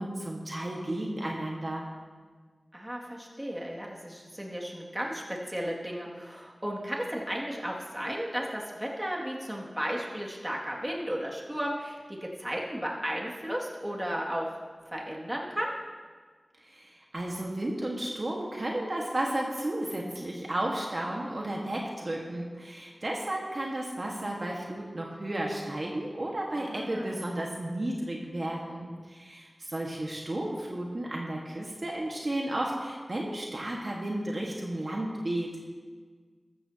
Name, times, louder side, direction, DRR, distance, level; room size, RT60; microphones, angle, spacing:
voice 1, 0.0-1.9 16.5-35.7, right 1 dB, 50° right, -1 dB, 1.6 m, -33 dB
voice 2, 2.7-14.5 14.9-15.7 26.5-27.3, equal, 15° right, -3 dB, 2.3 m, -34 dB
14.0 x 13.5 x 2.9 m, 1.5 s
wide cardioid pair, 50°, 0 cm